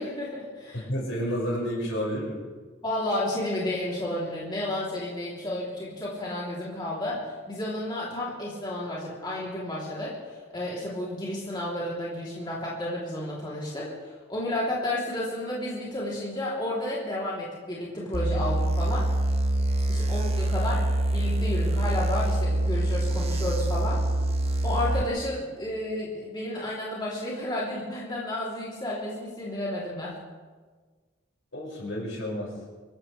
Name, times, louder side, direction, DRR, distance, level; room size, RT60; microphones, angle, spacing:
voice 1, 0.0-0.8 2.8-7.2 7.5-10.2 10.5-19.1 19.9-20.8 21.1-24.0 24.6-30.1, left 1 dB, 20° left, -6 dB, 3.2 m, -32 dB
voice 2, 0.7-2.4 31.5-32.5, equal, 75° left, -3 dB, 6.0 m, -30 dB
sound 1, 18.1-25.0, right 1 dB, 30° right, 1.0 m, -25 dB
24.5 x 15.0 x 3.3 m, 1.4 s
head